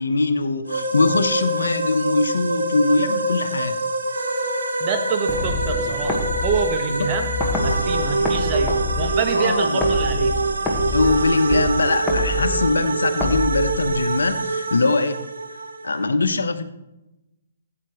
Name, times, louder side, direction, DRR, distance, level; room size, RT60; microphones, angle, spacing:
voice 1, 0.0-3.8 6.9-7.1 9.3-9.8 10.9-15.2 15.8-16.6, left 3 dB, 80° left, 10 dB, 1.0 m, -21 dB
sound 1, 0.7-16.1, right 2 dB, 85° right, 1.4 m, -25 dB
voice 2, 4.8-7.3 7.6-10.3, right 5 dB, 35° right, 5 dB, 1.4 m, -26 dB
sound 2, 5.3-14.3, left 3 dB, 5° left, 1.5 m, -28 dB
13.5 x 8.6 x 3.1 m, 0.93 s
figure-of-eight pair, 135°, 0 cm